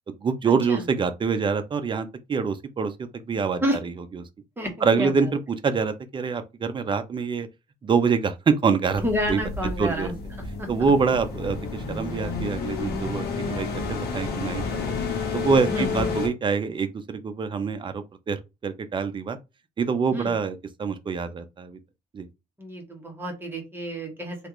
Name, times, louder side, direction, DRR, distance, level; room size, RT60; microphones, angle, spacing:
voice 1, 0.2-4.2 4.8-7.5 7.8-9.0 9.3-9.4 9.8-10.1 10.7-14.9 15.3-19.4 19.8-21.8 22.1-22.3, right 5 dB, 30° right, 0.5 m, -25 dB
voice 2, 5.0-5.3 9.0-10.1 10.6-10.7 15.7-16.2 20.1-20.3 22.6-24.4, equal, 15° right, 1.2 m, -29 dB
sound 1, 8.9-16.3, left 4 dB, 70° left, 1.0 m, -30 dB
3.2 x 2.4 x 3.0 m
cardioid pair, 110°, 17 cm